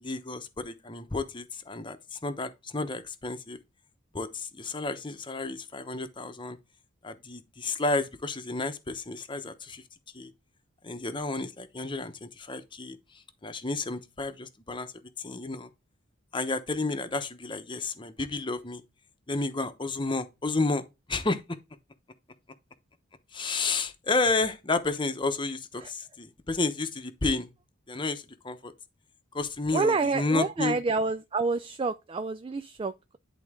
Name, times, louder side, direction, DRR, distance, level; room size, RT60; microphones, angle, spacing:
voice 1, 0.0-3.6 4.1-6.6 7.0-9.8 10.1-10.3 10.8-13.0 13.4-14.9 15.2-15.7 16.3-18.8 19.3-20.8 21.1-21.4 23.3-27.5 27.9-28.7 29.3-30.8, left 3 dB, 25° left, 0.9 m, -31 dB
voice 2, 29.7-33.2, right 4 dB, 25° right, 0.4 m, -28 dB
10.5 x 3.9 x 3.6 m
head